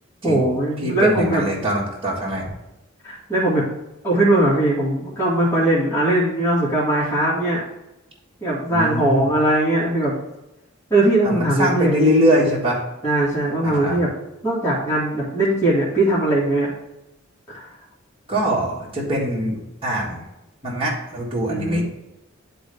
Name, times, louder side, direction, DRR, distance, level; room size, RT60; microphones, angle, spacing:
voice 1, 0.2-1.4 3.0-3.7 4.0-7.6 8.4-10.1 10.9-11.9 13.0-14.1 14.4-16.7 17.5-17.7 21.5-21.8, right 1 dB, 15° left, -9 dB, 2.0 m, -20 dB
voice 2, 0.8-2.4 8.7-9.3 11.2-12.8 13.6-14.0 18.3-20.2 20.6-21.8, equal, 30° right, -5 dB, 1.6 m, -22 dB
10.0 x 3.9 x 3.5 m, 0.94 s
head